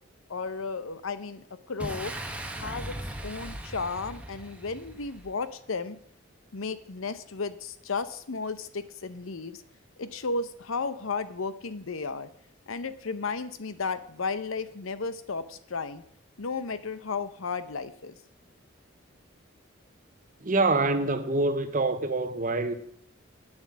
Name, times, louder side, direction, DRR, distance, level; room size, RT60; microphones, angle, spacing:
voice 1, 0.3-2.1 2.6-3.0 3.2-6.0 6.5-9.6 10.0-12.3 12.7-16.0 16.4-18.2, left 4 dB, 85° left, 0.8 m, -34 dB
Boom, 1.8-5.4, right 1 dB, 5° right, 1.0 m, -38 dB
voice 2, 20.4-22.7, right 2 dB, 40° right, 0.9 m, -25 dB
9.1 x 7.3 x 7.3 m
head